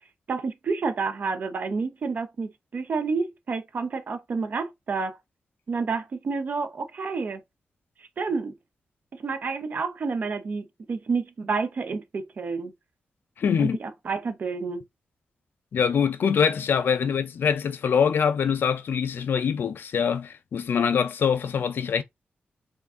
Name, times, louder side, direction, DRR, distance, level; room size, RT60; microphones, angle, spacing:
voice 1, 0.3-5.2 5.7-7.4 8.2-8.6 9.1-12.7 13.6-14.8, right 4 dB, 50° right, 0.7 m, -29 dB
voice 2, 13.4-13.8 15.7-22.0, left 7 dB, 70° left, 0.5 m, -24 dB
4.5 x 2.5 x 3.6 m
wide cardioid pair, 155°, 4 cm